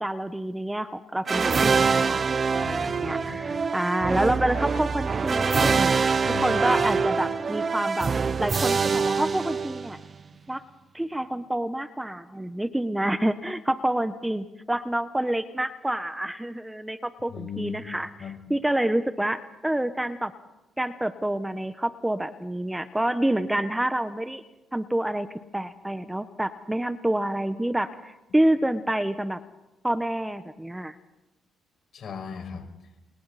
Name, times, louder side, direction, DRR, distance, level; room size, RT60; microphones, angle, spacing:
voice 1, 0.0-1.7 2.0-2.3 2.7-5.9 6.2-8.1 8.4-10.0 10.5-10.6 10.9-18.1 18.5-20.3 20.8-24.4 24.7-25.3 25.5-29.4 29.8-30.9, right 1 dB, 10° right, 11 dB, 1.1 m, -27 dB
sound 1, 1.3-10.1, right 5 dB, 40° right, 0.8 m, -24 dB
voice 2, 2.5-3.7 6.2-7.1 17.3-18.5 28.4-28.5 31.9-32.7, left 6 dB, 60° left, 3 dB, 5.8 m, -38 dB
30.0 x 29.5 x 4.2 m, 0.99 s
cardioid pair, 90°, 0 cm